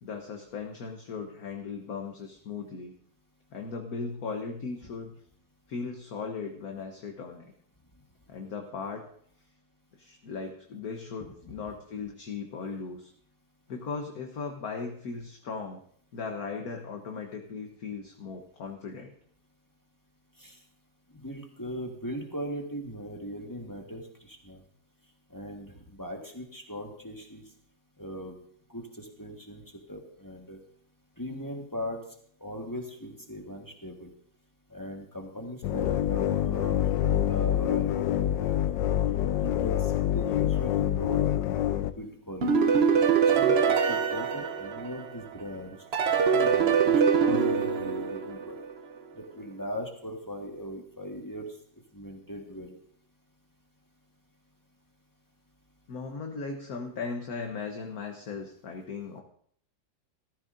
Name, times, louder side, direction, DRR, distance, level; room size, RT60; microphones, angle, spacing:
voice 1, 0.0-2.9 3.5-5.2 5.7-7.5 8.3-9.0 10.0-13.1 13.7-15.8 16.1-19.1 55.9-59.2, left 4 dB, 55° left, 2 dB, 1.4 m, -37 dB
voice 2, 21.1-24.6 25.3-27.4 28.0-28.4 28.7-29.6 29.9-30.6 31.2-32.0 32.4-34.1 34.7-38.6 39.4-41.3 42.0-42.7 43.3-45.8 46.3-48.6 49.3-51.5 51.9-52.8, equal, 10° left, 1 dB, 1.4 m, -39 dB
sound 1, 35.6-41.9, left 11 dB, 80° left, 1.3 m, -26 dB
sound 2, 42.4-45.3 45.9-48.8, right 6 dB, 60° right, 0.6 m, -24 dB
16.0 x 14.0 x 2.6 m, 0.62 s
omnidirectional pair, 2.0 m